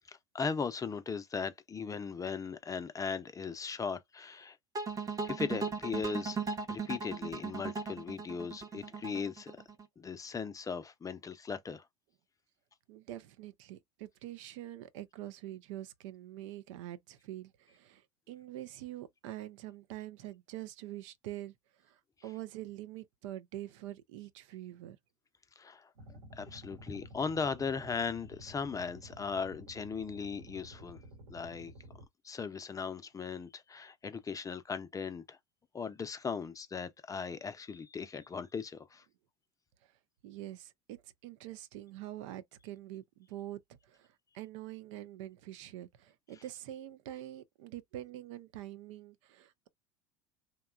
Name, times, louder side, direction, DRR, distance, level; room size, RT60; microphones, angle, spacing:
voice 1, 0.1-4.6 5.3-6.4 6.7-9.5 10.0-11.8 25.6-31.0 31.3-31.7 32.2-35.4 35.7-39.0, left 5 dB, 20° left, 0.5 m, -38 dB
sound 1, 4.7-9.8, right 5 dB, 20° right, 0.8 m, -37 dB
voice 2, 12.9-21.5 21.8-25.0 40.2-49.7, right 14 dB, 75° right, 0.5 m, -45 dB
sound 2, 26.0-32.1, equal, 90° right, 0.9 m, -52 dB
2.9 x 2.2 x 2.3 m
hypercardioid pair, 85°, 16 cm